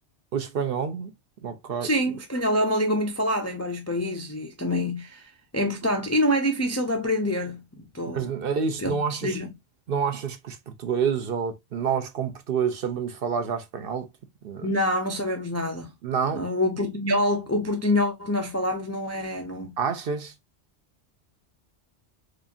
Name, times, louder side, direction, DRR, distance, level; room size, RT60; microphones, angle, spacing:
voice 1, 0.3-1.1 1.4-1.9 8.1-9.3 9.9-14.1 14.4-14.7 16.0-16.5 19.8-20.3, right 6 dB, 60° right, 0.7 m, -28 dB
voice 2, 1.8-7.6 7.9-8.3 8.8-9.5 14.6-15.9 16.3-19.8, left 1 dB, 25° left, 0.3 m, -26 dB
4.8 x 2.5 x 2.6 m
omnidirectional pair, 1.2 m